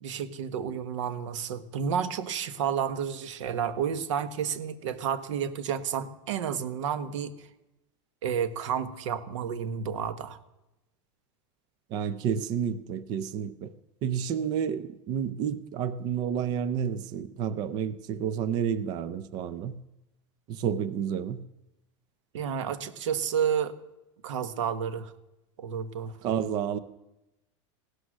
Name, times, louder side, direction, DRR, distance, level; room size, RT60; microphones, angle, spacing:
voice 1, 0.0-7.3 8.2-10.4 22.3-23.8 24.2-25.1 25.6-26.2, right 7 dB, 85° right, 1.4 m, -31 dB
voice 2, 11.9-13.7 14.0-19.8 20.5-21.4 26.2-26.8, right 8 dB, 25° right, 0.5 m, -30 dB
16.5 x 12.5 x 6.4 m
supercardioid pair, 180°, 16 cm